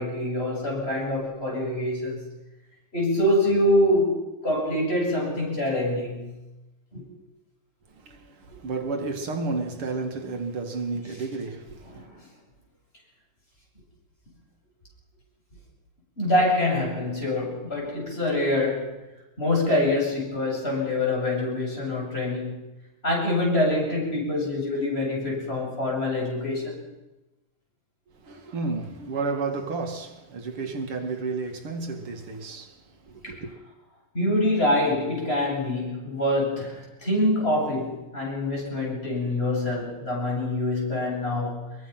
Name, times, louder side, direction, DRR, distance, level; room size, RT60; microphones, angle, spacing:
voice 1, 0.0-2.2 2.9-6.4 6.9-7.1 11.9-12.2 16.2-19.0 19.4-22.7 23.0-26.8 33.2-33.4 34.1-41.7, left 1 dB, 25° left, 8.3 m, -25 dB
voice 2, 7.9-12.0 28.2-33.5, right 3 dB, 80° right, 3.0 m, -32 dB
25.0 x 22.5 x 5.9 m
omnidirectional pair, 2.4 m